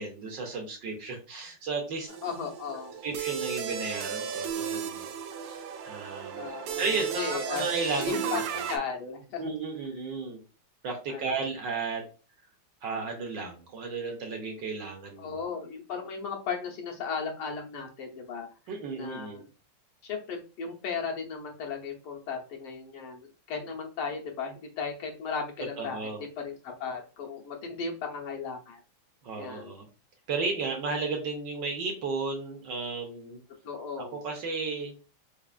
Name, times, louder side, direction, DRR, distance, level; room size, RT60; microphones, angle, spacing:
voice 1, 0.0-2.1 3.0-5.1 5.4-8.4 9.4-10.4 10.8-12.0 12.8-15.4 18.7-19.4 25.8-26.2 29.2-29.8 30.3-33.4 34.0-34.9, right 4 dB, 65° right, 2 dB, 1.2 m, -34 dB
sound 1, 2.1-8.8, right 8 dB, 80° right, 1.5 m, -35 dB
voice 2, 2.2-3.0 6.3-7.7 8.0-9.5 11.1-11.3 15.2-18.5 19.0-19.5 20.0-26.0 26.4-28.8 29.4-29.7 33.6-34.2, left 5 dB, 80° left, 0 dB, 1.8 m, -36 dB
4.8 x 2.4 x 2.4 m, 0.34 s
omnidirectional pair, 2.4 m